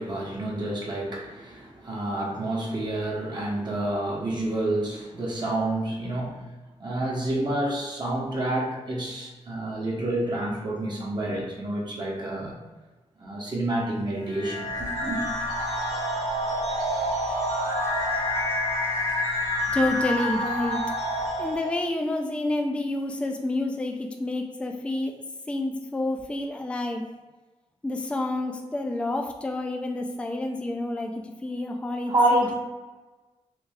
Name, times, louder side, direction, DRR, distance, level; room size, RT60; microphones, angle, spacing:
voice 1, 0.0-6.4 6.8-12.6 13.2-15.2 32.1-32.5, right 1 dB, 40° right, -3 dB, 0.9 m, -28 dB
sound 1, 14.3-21.9, left 1 dB, 65° left, 1.1 m, -28 dB
voice 2, 19.7-20.8 21.4-25.1 25.5-27.1 27.8-31.1 31.4-32.5, left 2 dB, 10° left, 3 dB, 0.3 m, -29 dB
3.2 x 2.7 x 3.4 m, 1.2 s
wide cardioid pair, 100°, 12 cm